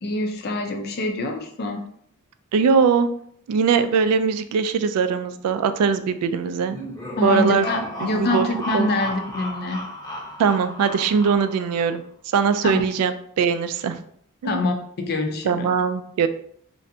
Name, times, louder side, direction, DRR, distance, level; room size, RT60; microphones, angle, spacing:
voice 1, 0.0-1.8 7.2-9.8 12.6-12.9 14.4-15.7, left 2 dB, 45° left, 4 dB, 0.5 m, -25 dB
voice 2, 2.5-3.1 3.5-6.8 7.2-7.7 8.0-8.5 8.7-8.9 10.4-12.0 12.3-14.0 14.4-14.6 15.5-16.3, right 6 dB, 80° right, 13 dB, 0.3 m, -21 dB
sound 1, 6.6-11.8, equal, 20° left, 0.7 m, -33 dB
3.2 x 2.5 x 2.7 m, 0.65 s
head